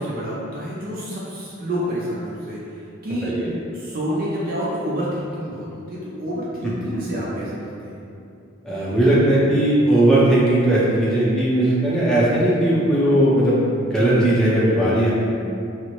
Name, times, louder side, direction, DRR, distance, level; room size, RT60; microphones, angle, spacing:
voice 1, 0.0-3.3 3.7-8.0, equal, 45° right, -7 dB, 0.5 m, -28 dB
voice 2, 8.6-15.1, right 1 dB, 5° left, -9 dB, 0.6 m, -18 dB
4.2 x 2.0 x 3.0 m, 2.6 s
head